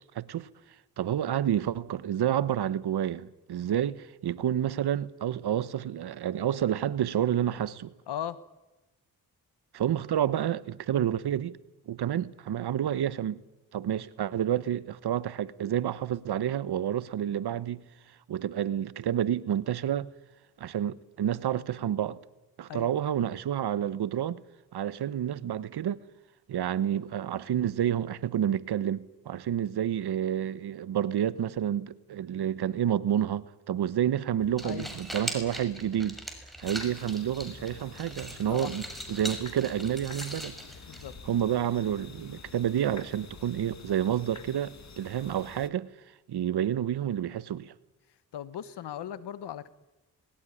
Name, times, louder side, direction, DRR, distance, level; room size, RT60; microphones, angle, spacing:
voice 1, 0.1-0.5 1.0-7.9 9.7-11.6 11.9-13.4 13.7-17.9 18.3-20.1 20.6-22.2 22.6-24.4 24.7-26.0 26.5-36.2 36.6-40.6 41.3-45.9 46.3-47.7, right 10 dB, 70° right, 1.1 m, -29 dB
voice 2, 8.1-8.4 22.7-22.9 34.6-34.9 38.5-38.7 40.9-41.1 48.3-49.7, left 10 dB, 80° left, 1.4 m, -37 dB
sound 1, 34.4-41.4, equal, ahead, 6.1 m, -41 dB
sound 2, 36.6-45.7, left 5 dB, 45° left, 1.9 m, -48 dB
20.0 x 17.5 x 10.0 m
cardioid pair, 55°, 40 cm